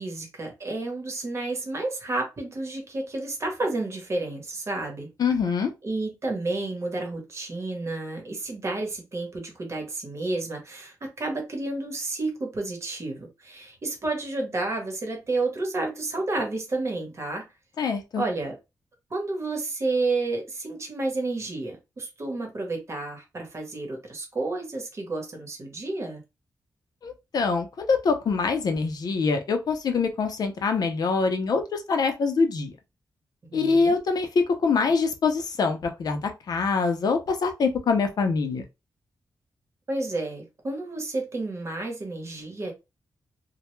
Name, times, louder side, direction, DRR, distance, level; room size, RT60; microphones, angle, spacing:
voice 1, 0.0-5.1 5.8-17.4 18.2-18.6 19.1-26.2 33.5-33.9 39.9-42.7, right 2 dB, 40° right, 0.9 m, -31 dB
voice 2, 5.2-5.7 17.8-18.2 27.0-32.7 33.5-38.6, left 4 dB, 60° left, 0.5 m, -24 dB
2.1 x 2.1 x 3.0 m
wide cardioid pair, 130°, 7 cm